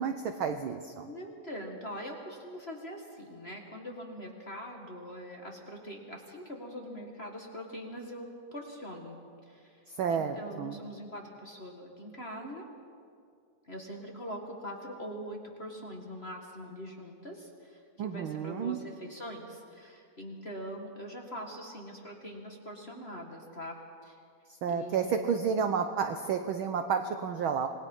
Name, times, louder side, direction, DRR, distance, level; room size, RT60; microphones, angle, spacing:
voice 1, 0.0-1.1 9.9-10.8 18.0-18.8 24.6-27.7, right 6 dB, 80° right, 7 dB, 1.1 m, -31 dB
voice 2, 1.0-9.2 9.5-9.8 10.1-12.7 13.6-23.8 24.0-24.2 24.7-25.4, equal, 25° left, 1 dB, 1.6 m, -43 dB
26.5 x 20.0 x 5.5 m, 2.3 s
omnidirectional pair, 3.4 m